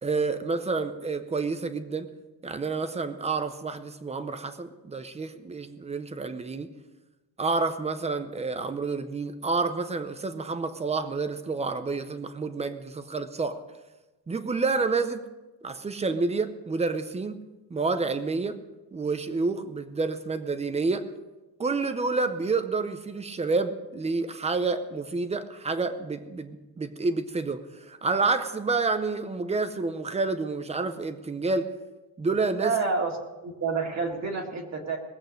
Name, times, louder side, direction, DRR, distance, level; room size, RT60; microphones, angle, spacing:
voice 1, 0.0-2.1 2.4-6.7 7.4-13.6 14.3-15.2 15.6-17.4 17.7-18.6 18.9-21.1 21.6-31.7 32.2-32.7, right 3 dB, 15° right, 11 dB, 0.6 m, -29 dB
voice 2, 32.6-33.2 33.4-35.0, right 4 dB, 35° right, 1 dB, 1.8 m, -28 dB
20.5 x 8.1 x 5.2 m, 1.1 s
cardioid pair, 175°, 47 cm